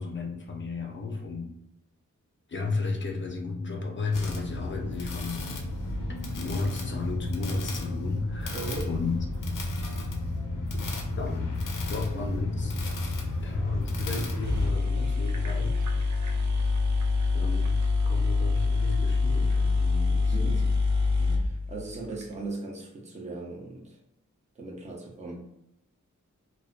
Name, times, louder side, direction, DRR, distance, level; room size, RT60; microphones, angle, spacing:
voice 1, 0.0-1.5 2.5-5.5 6.3-8.6 8.9-9.2 10.7-10.9 11.2-11.5 11.8-12.8 13.4-16.2 17.3-20.8 21.0-21.4, left 3 dB, 40° left, 2 dB, 0.4 m, -34 dB
sound 1, 4.1-14.7, left 2 dB, 90° left, 0.5 m, -32 dB
voice 2, 8.5-8.9 20.3-20.7 21.2-24.0 24.6-25.4, right 2 dB, 20° right, -2 dB, 0.6 m, -38 dB
sound 2, 14.2-14.3 14.4-22.3, left 3 dB, 65° right, 0.5 m, -25 dB
2.6 x 2.1 x 2.4 m, 0.82 s
wide cardioid pair, 110°, 31 cm